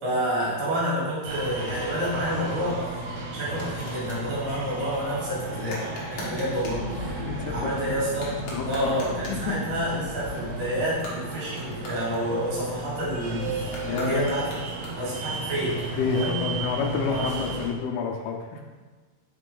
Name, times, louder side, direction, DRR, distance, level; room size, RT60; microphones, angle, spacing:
voice 1, 0.0-5.8 6.1-8.3 8.6-14.5 14.9-15.9 16.1-16.4 17.1-17.3, equal, 55° right, -7 dB, 3.3 m, -29 dB
sound 1, 1.2-17.7, right 3 dB, 70° right, 3.0 m, -34 dB
sound 2, 3.5-4.3 5.6-6.9 8.1-9.5 10.9-12.7 13.6-15.3, left 1 dB, 60° left, 2.0 m, -41 dB
sound 3, 6.6-11.8, left 1 dB, 45° left, 1.2 m, -38 dB
voice 2, 7.2-7.7 8.5-8.9 9.3-9.4 13.8-14.2 16.0-18.6, left 5 dB, 80° left, 1 dB, 2.4 m, -29 dB
5.9 x 4.7 x 3.8 m, 1.3 s
omnidirectional pair, 4.9 m